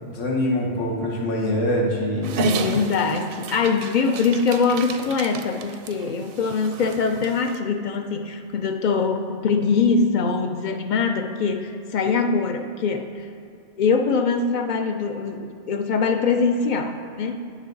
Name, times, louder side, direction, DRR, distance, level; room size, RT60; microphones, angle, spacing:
voice 1, 0.0-2.6, left 1 dB, 90° left, -1 dB, 1.5 m, -24 dB
Dog, 2.2-7.6, right 3 dB, 60° right, 0.6 m, -31 dB
voice 2, 2.4-13.3 13.8-17.4, left 5 dB, 60° left, 7 dB, 0.5 m, -23 dB
10.0 x 6.3 x 3.8 m, 2.6 s
omnidirectional pair, 1.2 m